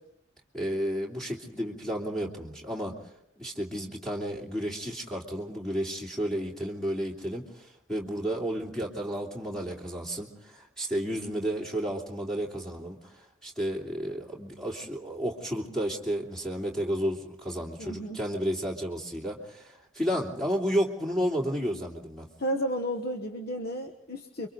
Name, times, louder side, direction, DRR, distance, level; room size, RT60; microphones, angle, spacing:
voice 1, 0.5-3.0 3.4-22.3, equal, 5° left, -2 dB, 3.0 m, -32 dB
voice 2, 17.8-18.2 22.4-24.5, equal, 50° left, 5 dB, 1.1 m, -32 dB
29.5 x 24.0 x 3.9 m, 0.75 s
head